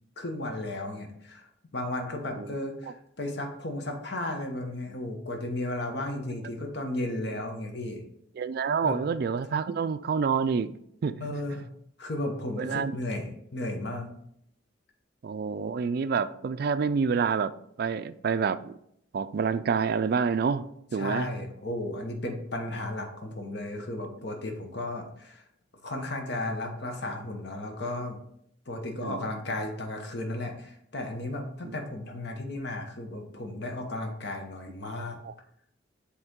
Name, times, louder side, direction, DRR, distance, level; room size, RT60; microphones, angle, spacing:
voice 1, 0.2-1.5 1.7-8.0 8.8-9.0 11.2-11.6 12.0-14.1 21.0-25.4 25.8-28.2 28.7-35.2, left 1 dB, 60° left, 3 dB, 1.1 m, -34 dB
voice 2, 8.4-10.8 11.0-11.3 12.6-13.0 15.2-17.5 17.8-18.8 19.1-20.7 20.9-21.3 29.0-29.3 31.6-31.7 35.2-35.3, right 5 dB, 50° right, 12 dB, 0.3 m, -28 dB
7.9 x 3.3 x 3.6 m, 0.72 s
head